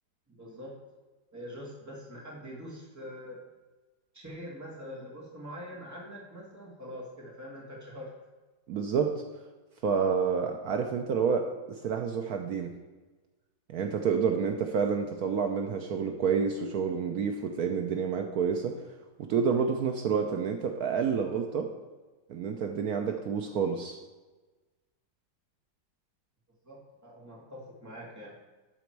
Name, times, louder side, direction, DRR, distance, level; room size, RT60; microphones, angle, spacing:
voice 1, 0.3-0.7 1.3-3.4 4.1-8.1 26.6-28.3, equal, 10° right, -4 dB, 1.9 m, -44 dB
voice 2, 8.7-9.1 9.8-12.7 13.7-18.7 19.2-21.7 22.3-24.0, right 6 dB, 65° right, 4 dB, 1.0 m, -29 dB
12.0 x 4.1 x 4.6 m, 1.2 s
omnidirectional pair, 2.0 m